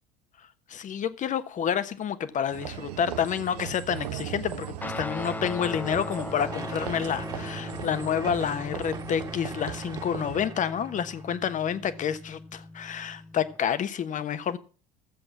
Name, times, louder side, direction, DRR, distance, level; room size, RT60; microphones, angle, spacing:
voice 1, 0.7-14.6, left 8 dB, 40° left, 1.2 m, -29 dB
sound 1, 2.5-10.4, right 10 dB, 80° right, 0.9 m, -38 dB
Guitar, 4.8-13.6, left 2 dB, 10° left, 0.5 m, -39 dB
sound 2, 6.5-11.5, right 4 dB, 20° right, 1.7 m, -43 dB
14.0 x 7.8 x 6.1 m
hypercardioid pair, 65°, 20 cm